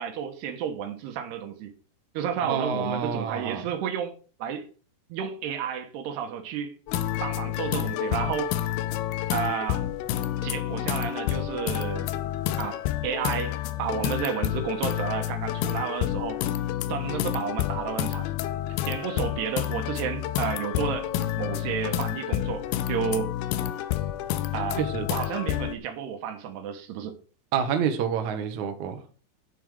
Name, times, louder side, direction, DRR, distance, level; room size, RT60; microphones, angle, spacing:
voice 1, 0.0-1.7 2.1-4.1 4.4-4.7 5.1-6.8 7.2-8.5 9.3-9.9 10.4-12.1 12.6-16.4 16.9-18.3 18.9-21.1 21.4-23.4 24.5-24.8 25.1-27.1, right 8 dB, 75° right, 3.2 m, -31 dB
voice 2, 2.4-3.6 24.8-25.1 27.5-29.0, right 7 dB, 60° right, 2.1 m, -28 dB
sound 1, 6.9-25.8, left 12 dB, 80° left, 2.6 m, -29 dB
10.0 x 7.6 x 5.0 m
omnidirectional pair, 4.9 m